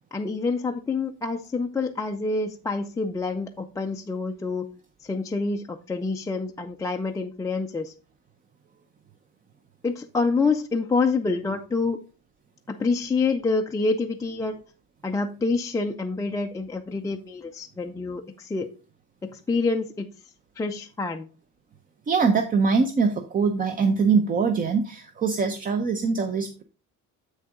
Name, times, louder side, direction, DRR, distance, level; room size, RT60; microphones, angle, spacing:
voice 1, 0.1-4.7 5.0-7.9 9.8-12.0 12.7-14.6 15.0-18.7 19.2-20.1 20.6-21.3, left 3 dB, 10° left, 2 dB, 0.3 m, -27 dB
voice 2, 22.1-26.6, right 5 dB, 25° right, 7 dB, 0.6 m, -23 dB
7.9 x 6.5 x 3.6 m, 0.35 s
cardioid pair, 165°, 32 cm